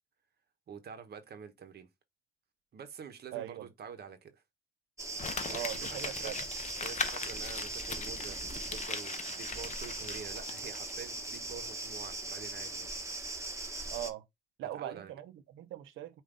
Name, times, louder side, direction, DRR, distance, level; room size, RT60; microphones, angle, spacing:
voice 1, 0.7-1.9 2.7-4.4 5.5-5.6 6.2-6.3 6.8-8.4 8.7-13.0 14.7-15.1, right 6 dB, 55° right, 1.0 m, -47 dB
voice 2, 3.3-3.7 5.5-6.4 13.9-14.2 14.6-16.2, right 12 dB, 80° right, 0.7 m, -41 dB
sound 1, 5.0-14.1, right 2 dB, 15° right, 1.1 m, -40 dB
Crumpling crinkling, 5.2-10.9 11.2-11.3, left 6 dB, 35° left, 0.8 m, -40 dB
5.2 x 2.6 x 3.7 m
cardioid pair, 90°, 20 cm